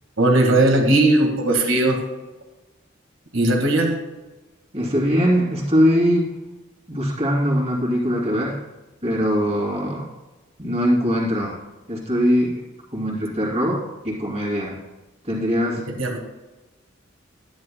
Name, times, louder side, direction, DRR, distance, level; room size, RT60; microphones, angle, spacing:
voice 1, 0.2-2.0 3.3-4.0 15.9-16.2, right 2 dB, 70° right, 3 dB, 1.7 m, -18 dB
voice 2, 4.7-6.3 6.9-8.6 9.0-10.1 10.6-11.6 11.9-12.6 12.9-14.8 15.2-15.8, equal, 30° right, -4 dB, 2.8 m, -21 dB
12.5 x 10.5 x 2.2 m, 1.1 s
head